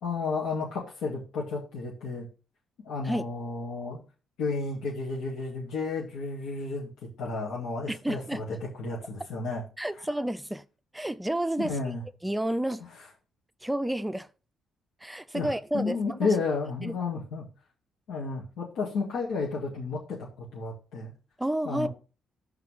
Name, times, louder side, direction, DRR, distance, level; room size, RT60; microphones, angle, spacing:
voice 1, 0.0-2.3 2.8-4.0 4.4-6.9 7.2-9.6 11.6-12.0 15.3-17.4 18.1-21.1 21.6-21.9, left 4 dB, 85° left, 2.1 m, -32 dB
voice 2, 7.9-8.4 9.8-10.7 10.9-11.8 12.2-12.9 13.6-14.3 15.0-16.3 16.8-17.0 21.4-21.9, right 1 dB, 5° right, 0.5 m, -30 dB
5.7 x 4.7 x 6.3 m
cardioid pair, 90°, 0 cm